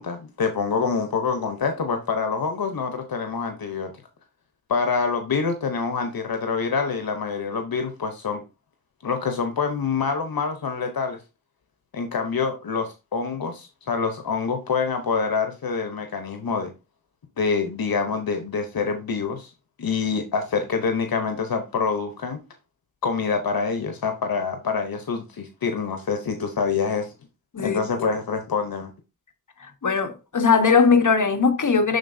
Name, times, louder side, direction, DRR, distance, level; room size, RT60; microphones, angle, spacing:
voice 1, 0.0-3.9 4.7-8.4 9.0-11.2 11.9-16.7 17.4-19.5 19.8-22.4 23.0-27.1 27.6-28.9, left 5 dB, 90° left, 0.9 m, -26 dB
voice 2, 29.8-32.0, left 5 dB, 60° left, 1.2 m, -19 dB
10.5 x 4.0 x 2.6 m
cardioid pair, 40°, 34 cm